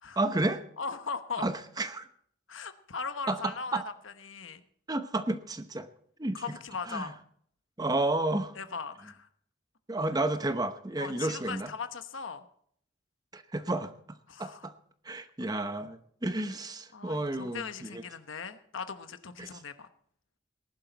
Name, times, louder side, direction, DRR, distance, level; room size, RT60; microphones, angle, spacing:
voice 1, 0.2-0.6 1.4-2.1 3.3-3.9 4.9-5.9 6.2-6.4 6.9-7.1 7.8-8.6 9.9-11.7 13.3-13.9 14.4-14.7 15.0-18.0 19.4-19.6, right 2 dB, 20° right, 9 dB, 0.8 m, -31 dB
voice 2, 0.8-1.5 2.5-4.6 6.3-7.1 8.6-9.3 11.0-12.4 14.3-14.7 16.9-19.9, left 5 dB, 75° left, 10 dB, 1.0 m, -39 dB
19.0 x 11.0 x 4.1 m, 0.62 s
head